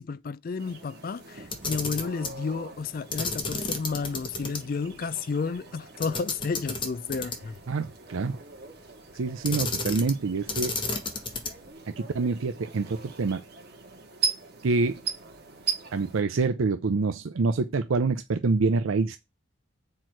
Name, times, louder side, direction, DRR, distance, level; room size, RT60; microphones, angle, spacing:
voice 1, 0.0-7.6, left 4 dB, 45° left, 0.3 m, -32 dB
sound 1, 0.6-16.2, right 5 dB, 55° right, 1.9 m, -40 dB
Camera, 1.4-2.4 3.1-4.6 4.9-5.0 6.0-7.6 9.4-10.2 10.5-11.7, left 3 dB, 25° left, 1.1 m, -32 dB
voice 2, 7.7-8.4 9.1-10.7 11.9-13.4 14.6-15.0 15.9-19.2, right 4 dB, 85° right, 0.5 m, -26 dB
7.6 x 4.5 x 4.5 m
head